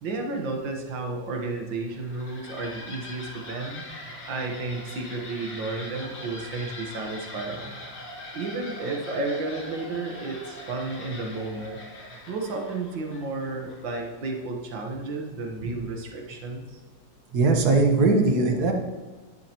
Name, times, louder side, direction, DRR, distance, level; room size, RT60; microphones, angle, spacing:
voice 1, 0.0-3.8 4.3-7.7 8.3-11.8 12.3-16.8, right 3 dB, 85° right, 1 dB, 2.1 m, -32 dB
sound 1, 1.8-14.3, left 1 dB, 80° left, 2.8 m, -42 dB
voice 2, 17.3-18.7, right 3 dB, 60° right, 3 dB, 1.7 m, -21 dB
12.5 x 11.0 x 3.0 m, 1.3 s
omnidirectional pair, 2.0 m